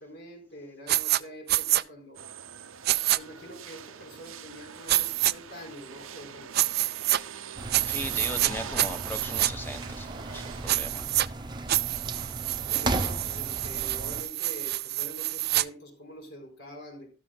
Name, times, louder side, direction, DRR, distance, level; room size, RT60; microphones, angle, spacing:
voice 1, 0.0-2.3 3.1-6.5 12.7-17.1, equal, 60° left, 4.5 m, -45 dB
sound 1, 0.9-1.2 1.5-1.8 2.8-3.2 4.9-5.3 6.5-7.2 7.7-8.5 8.8-9.5 10.7-11.3 11.7-15.6, right 15 dB, 50° right, 0.4 m, -27 dB
sound 2, 2.1-10.9, right 7 dB, 90° right, 0.8 m, -43 dB
sound 3, 7.6-14.2, right 2 dB, 20° right, 0.9 m, -36 dB
voice 2, 7.8-11.1, left 1 dB, 10° left, 1.2 m, -38 dB
13.5 x 13.5 x 2.3 m
head